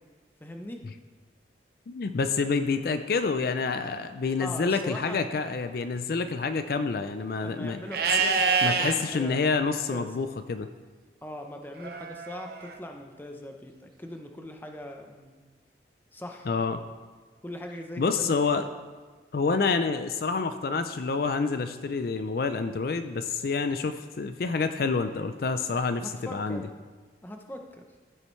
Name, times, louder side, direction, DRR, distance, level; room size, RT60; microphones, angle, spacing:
voice 1, 0.4-0.8 4.4-5.2 7.4-10.1 11.2-15.3 16.1-16.5 17.4-18.6 25.6-26.6 27.2-27.6, left 1 dB, 10° left, 3 dB, 0.7 m, -40 dB
voice 2, 1.9-7.8 8.3-10.7 16.5-16.8 18.0-18.7 19.3-26.7, left 4 dB, 55° left, 9 dB, 0.4 m, -28 dB
Livestock farm animals working animals, 7.9-8.9 11.8-12.8, right 5 dB, 55° right, 0.7 m, -26 dB
14.5 x 6.5 x 3.2 m, 1.4 s
head